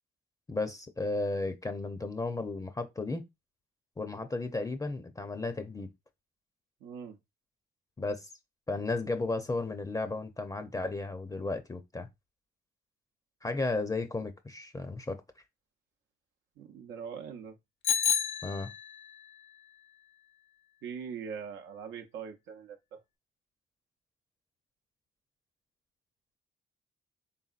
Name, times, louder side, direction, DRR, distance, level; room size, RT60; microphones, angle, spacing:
voice 1, 0.5-3.3 4.0-5.9 8.0-8.3 8.7-12.1 13.4-15.2 18.4-18.7, left 3 dB, 15° left, 0.5 m, -34 dB
voice 2, 6.8-7.2 16.6-17.6 20.8-23.0, right 7 dB, 90° right, 0.7 m, -42 dB
Bicycle bell, 17.8-19.1, left 7 dB, 70° left, 0.8 m, -29 dB
4.1 x 3.6 x 2.4 m
cardioid pair, 90°, 20 cm